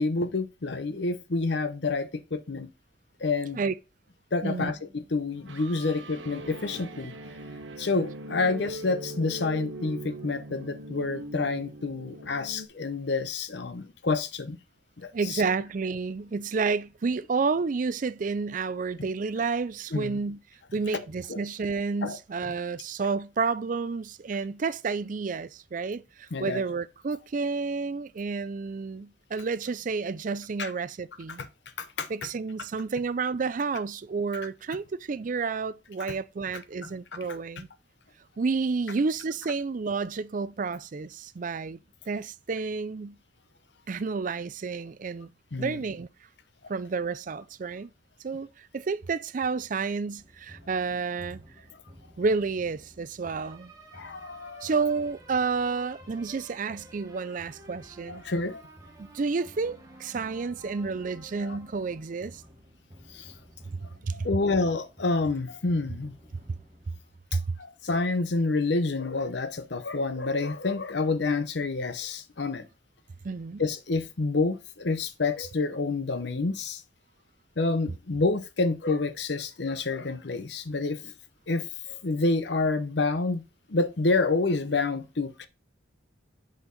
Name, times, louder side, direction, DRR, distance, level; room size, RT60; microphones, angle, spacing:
voice 1, 0.0-2.7 3.2-3.6 4.3-7.1 7.8-14.6 15.0-15.4 19.9-20.2 21.3-21.4 22.0-22.2 26.3-26.6 30.6-30.7 31.8-32.1 36.8-36.9 45.5-45.8 53.9-54.7 58.1-58.6 61.4-61.6 63.1-63.3 64.1-66.2 67.6-72.6 73.6-76.8 77.6-81.1 81.5-85.5, left 3 dB, 60° left, 0.8 m, -28 dB
sound 1, 4.4-12.7, right 1 dB, 80° right, 1.1 m, -41 dB
voice 2, 15.1-20.4 20.7-31.4 32.1-37.7 38.4-41.8 42.1-43.1 43.9-45.3 45.6-46.1 46.7-47.9 48.2-51.4 52.2-53.7 54.6-58.2 59.0-62.4 63.7-63.8 64.0-64.3 67.3-67.6 73.2-73.6, right 4 dB, 45° right, 0.4 m, -30 dB
sound 2, 50.2-67.8, right 1 dB, 15° right, 1.4 m, -52 dB
8.3 x 4.4 x 3.9 m
head